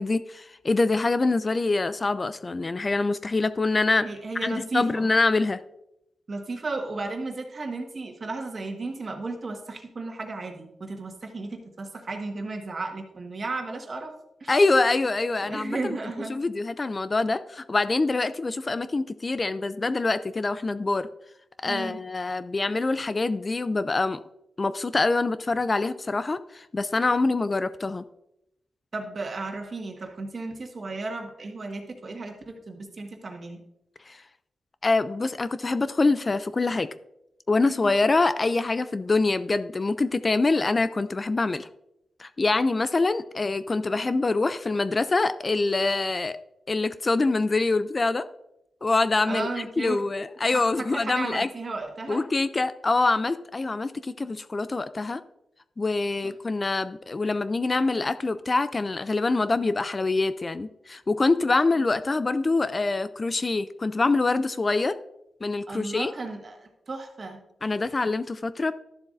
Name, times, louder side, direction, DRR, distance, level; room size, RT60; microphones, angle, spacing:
voice 1, 0.0-4.1 4.4-5.6 14.5-16.0 16.3-21.1 21.6-24.2 24.6-28.0 34.1-34.2 34.8-36.9 37.5-41.7 42.2-46.4 46.7-48.3 48.8-49.5 49.8-51.5 52.1-55.2 55.8-65.0 65.4-66.1 67.6-68.7, left 3 dB, 35° left, 13 dB, 0.3 m, -25 dB
voice 2, 4.0-5.1 6.3-14.1 14.4-14.6 15.4-16.3 21.6-22.0 28.9-33.6 37.8-37.9 49.2-50.0 50.5-52.2 65.7-67.4, right 3 dB, 45° right, 3 dB, 1.5 m, -34 dB
12.0 x 7.1 x 2.6 m, 0.83 s
cardioid pair, 85°, 0 cm